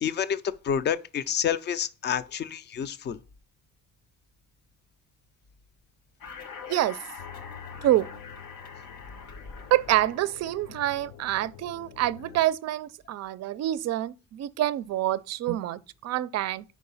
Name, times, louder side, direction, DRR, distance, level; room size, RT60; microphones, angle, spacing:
voice 1, 0.0-3.2, left 8 dB, 35° left, 0.4 m, -29 dB
sound 1, 6.2-10.7, left 6 dB, 85° left, 1.3 m, -44 dB
voice 2, 6.7-7.0 7.8-8.1 9.7-16.6, right 14 dB, 50° right, 0.4 m, -27 dB
sound 2, 7.2-12.5, left 8 dB, 70° left, 0.7 m, -47 dB
4.8 x 4.6 x 5.3 m
cardioid pair, 145°, 33 cm